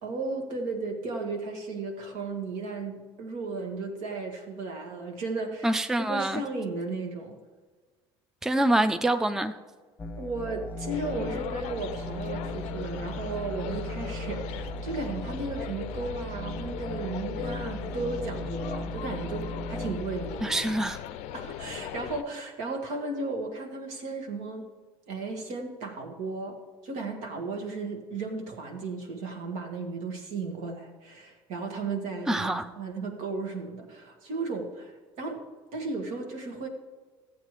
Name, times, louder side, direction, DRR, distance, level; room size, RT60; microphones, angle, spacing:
voice 1, 0.0-7.4 10.2-20.9 21.3-24.7 25.1-35.4 35.7-36.7, right 3 dB, 70° right, 3 dB, 1.6 m, -35 dB
voice 2, 5.6-6.4 8.4-9.5 20.4-21.0 32.3-32.7, right 1 dB, 5° right, 9 dB, 0.5 m, -25 dB
sound 1, 10.0-20.3, equal, 15° left, 1.0 m, -37 dB
sound 2, 10.9-22.2, left 11 dB, 65° left, 0.5 m, -39 dB
14.0 x 8.1 x 3.3 m, 1.4 s
hypercardioid pair, 70°, 13 cm